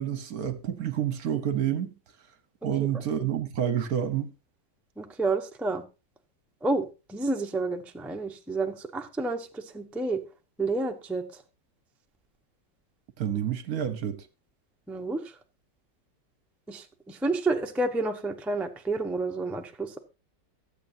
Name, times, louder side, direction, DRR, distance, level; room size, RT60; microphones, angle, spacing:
voice 1, 0.0-1.9 2.6-4.3 13.2-14.3, right 9 dB, 60° right, 1.3 m, -29 dB
voice 2, 5.0-5.8 6.6-10.2 10.6-11.4 14.9-15.4 16.7-20.0, right 3 dB, ahead, 0.6 m, -30 dB
23.0 x 7.7 x 2.7 m
omnidirectional pair, 1.9 m